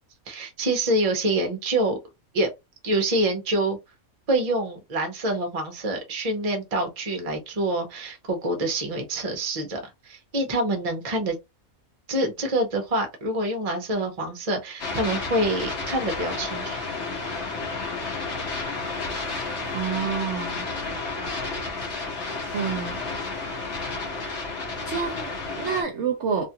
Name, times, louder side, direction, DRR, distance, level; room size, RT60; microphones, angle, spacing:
voice 1, 0.3-2.0 2.3-2.5 2.8-3.8 4.3-11.4 12.1-16.8, right 1 dB, 35° right, 0.7 m, -26 dB
sound 1, 14.8-25.8, left 3 dB, 50° left, 1.2 m, -31 dB
voice 2, 19.7-20.7 22.5-23.0 24.8-26.5, right 6 dB, 60° right, 0.8 m, -28 dB
2.8 x 2.4 x 2.8 m
omnidirectional pair, 1.5 m